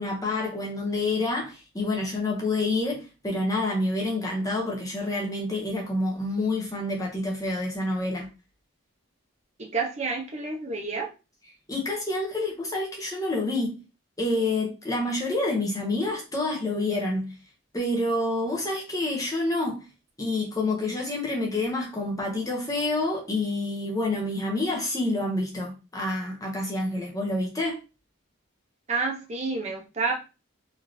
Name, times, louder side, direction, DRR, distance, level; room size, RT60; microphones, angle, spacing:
voice 1, 0.0-8.3 11.7-13.8 14.2-17.3 17.7-19.9 20.2-27.8, left 2 dB, 15° left, 0.6 m, -28 dB
voice 2, 9.6-11.1 28.9-30.1, right 4 dB, 30° right, 0.7 m, -29 dB
3.1 x 2.7 x 2.6 m
head